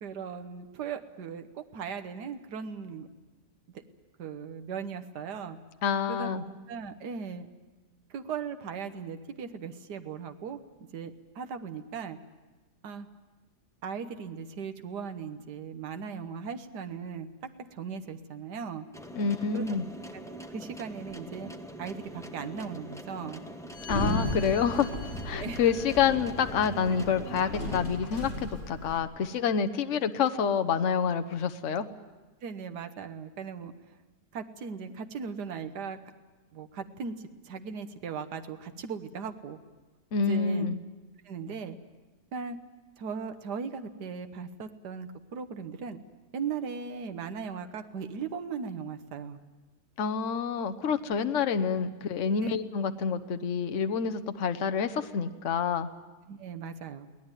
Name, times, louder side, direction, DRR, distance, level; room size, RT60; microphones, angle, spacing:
voice 1, 0.0-3.1 4.2-5.6 6.1-7.5 8.1-10.6 10.9-12.2 12.8-13.1 13.8-18.9 19.5-19.7 20.1-21.5 21.8-23.4 25.3-25.6 32.4-33.7 34.3-36.0 36.5-37.2 37.4-39.6 40.2-40.7 41.2-41.8 42.3-42.6 43.0-46.0 46.3-49.4 52.4-52.5 56.3-57.1, right 6 dB, 75° right, 8 dB, 1.7 m, -38 dB
voice 2, 5.8-6.4 19.1-19.9 23.9-24.9 25.2-31.9 40.1-40.8 50.0-55.9, left 6 dB, 50° left, 9 dB, 1.2 m, -28 dB
sound 1, 18.9-28.0, right 1 dB, ahead, 0.9 m, -44 dB
Sliding door, 23.7-29.0, left 1 dB, 30° left, 4.4 m, -35 dB
23.5 x 18.0 x 9.0 m, 1.2 s
omnidirectional pair, 1.8 m